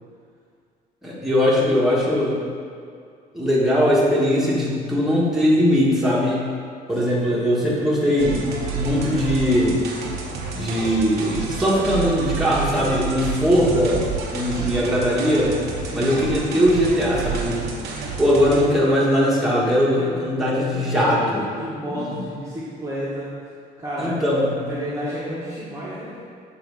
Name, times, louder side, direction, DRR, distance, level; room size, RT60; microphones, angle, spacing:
voice 1, 1.0-2.3 3.3-6.4 6.9-9.8 10.5-14.0 14.3-15.6 15.9-17.6 18.2-21.4 21.9-22.2 24.0-24.5, equal, ahead, -7 dB, 1.6 m, -20 dB
sound 1, 8.2-18.6, right 4 dB, 75° right, 1.0 m, -30 dB
voice 2, 14.5-15.1 15.8-16.3 19.9-21.2 21.5-23.3 23.8-26.1, equal, 15° right, -9 dB, 1.3 m, -32 dB
7.7 x 3.4 x 4.9 m, 2.2 s
cardioid pair, 110°, 17 cm